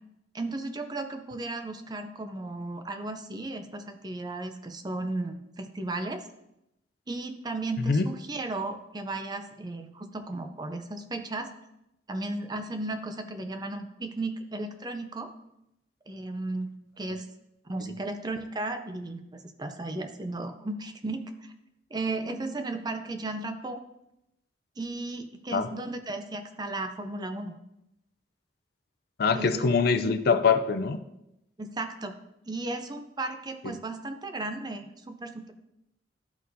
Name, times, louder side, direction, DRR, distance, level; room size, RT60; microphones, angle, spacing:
voice 1, 0.3-6.3 7.1-11.5 12.1-15.3 16.1-17.2 17.6-21.5 21.9-23.8 24.8-27.6 29.3-29.7 31.6-32.1 32.5-35.5, right 2 dB, 25° right, 6 dB, 0.5 m, -35 dB
voice 2, 29.2-31.0, left 5 dB, 55° left, 10 dB, 0.4 m, -23 dB
12.0 x 4.4 x 2.7 m, 0.86 s
head